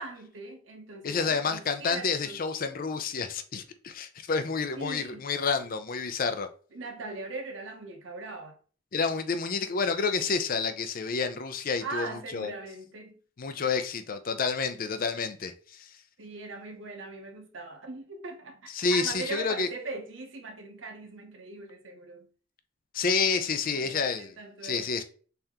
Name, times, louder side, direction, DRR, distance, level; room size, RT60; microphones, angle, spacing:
voice 1, 0.0-2.4 4.7-5.2 6.7-8.6 11.8-13.2 16.2-22.3 23.7-24.9, right 3 dB, 80° right, 0.8 m, -40 dB
voice 2, 1.0-6.5 8.9-12.5 13.4-15.9 18.7-19.7 22.9-24.3 24.6-25.0, left 5 dB, 45° left, 0.4 m, -29 dB
3.4 x 2.8 x 3.5 m
head